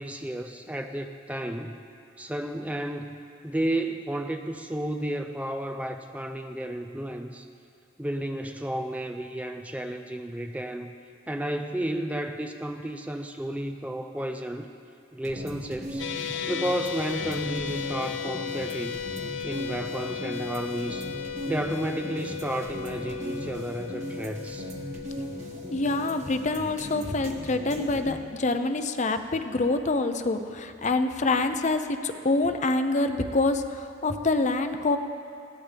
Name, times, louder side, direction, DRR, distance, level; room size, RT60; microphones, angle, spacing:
voice 1, 0.0-1.8 2.2-7.5 8.0-11.0 11.3-14.7 15.1-16.1 16.5-19.0 19.4-21.1 21.5-24.7, right 1 dB, 5° right, 6 dB, 0.4 m, -32 dB
sound 1, 15.2-28.2, equal, 40° right, 1.8 m, -39 dB
sound 2, 16.0-28.3, left 8 dB, 75° left, 0.7 m, -36 dB
voice 2, 25.7-35.0, left 2 dB, 40° left, 8 dB, 0.7 m, -26 dB
20.5 x 16.0 x 3.4 m, 2.5 s
head